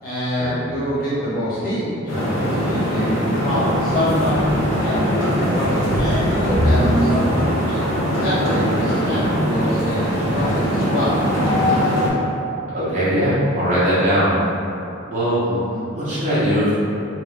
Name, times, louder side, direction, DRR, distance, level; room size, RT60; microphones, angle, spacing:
voice 1, 0.0-4.4 4.8-7.8 8.2-11.7 15.4-15.8, equal, 45° left, -11 dB, 1.5 m, -25 dB
sound 1, 2.1-12.1, equal, 65° left, 1.0 m, -21 dB
sound 2, 5.9-8.4 9.0-9.1 9.7-9.8, equal, 55° right, 0.6 m, -22 dB
voice 2, 12.7-14.3 15.1-15.4 15.9-16.8, equal, 35° right, -12 dB, 1.0 m, -20 dB
3.2 x 3.2 x 3.3 m, 2.7 s
head